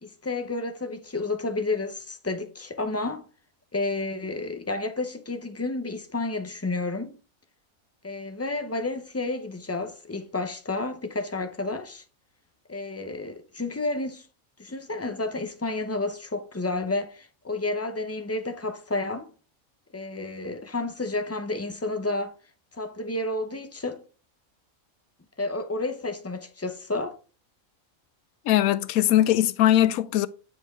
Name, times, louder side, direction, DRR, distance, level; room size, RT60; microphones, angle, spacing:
voice 1, 0.0-3.3 3.7-7.2 8.0-12.0 12.7-14.3 14.6-19.3 19.9-22.4 22.7-24.0 25.4-27.2, left 2 dB, 20° left, 0.5 m, -31 dB
voice 2, 28.5-30.3, left 12 dB, 85° left, 1.0 m, -20 dB
9.8 x 4.5 x 3.6 m
omnidirectional pair, 1.5 m